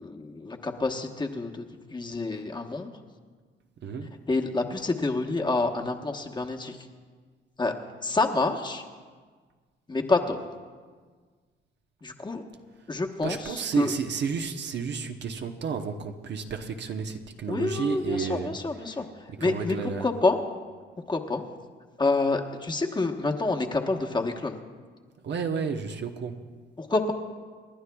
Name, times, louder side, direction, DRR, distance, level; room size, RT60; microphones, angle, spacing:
voice 1, 0.0-1.6 1.9-2.9 4.3-6.8 7.6-7.7 8.0-8.8 9.9-10.4 12.0-12.4 12.9-13.9 17.5-20.4 21.1-21.4 22.0-24.6 26.8-27.1, left 3 dB, 20° left, 2 dB, 1.1 m, -28 dB
voice 2, 3.8-4.1 13.2-18.5 19.3-20.1 25.2-26.4, right 5 dB, 60° right, 5 dB, 0.9 m, -31 dB
29.0 x 11.5 x 2.3 m, 1.5 s
cardioid pair, 90°, 20 cm